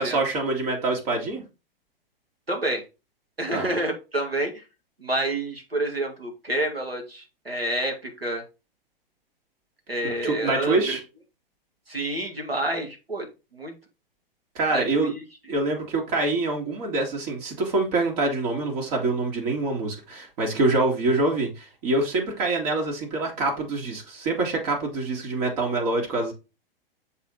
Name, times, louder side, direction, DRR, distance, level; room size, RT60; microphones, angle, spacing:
voice 1, 0.0-1.4 3.5-3.7 10.0-11.0 14.5-15.1 15.5-26.3, right 2 dB, 40° right, 2.3 m, -25 dB
voice 2, 2.5-2.8 3.4-4.6 5.0-8.4 9.9-10.8 11.9-13.3 13.5-13.7 14.7-15.2, right 1 dB, 85° right, 2.1 m, -28 dB
6.9 x 4.2 x 4.0 m
figure-of-eight pair, 105°, 29 cm